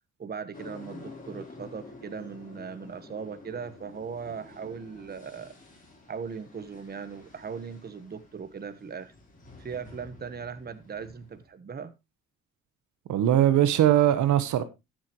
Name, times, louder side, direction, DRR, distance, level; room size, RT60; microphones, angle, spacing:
voice 1, 0.2-5.5 6.1-9.1 9.6-11.9 14.0-14.1, right 6 dB, 30° right, 1.0 m, -39 dB
sound 1, 0.5-11.5, left 2 dB, 25° left, 3.8 m, -49 dB
voice 2, 13.1-14.6, right 11 dB, 75° right, 1.1 m, -21 dB
13.0 x 7.6 x 3.0 m
cardioid pair, 90°, 30 cm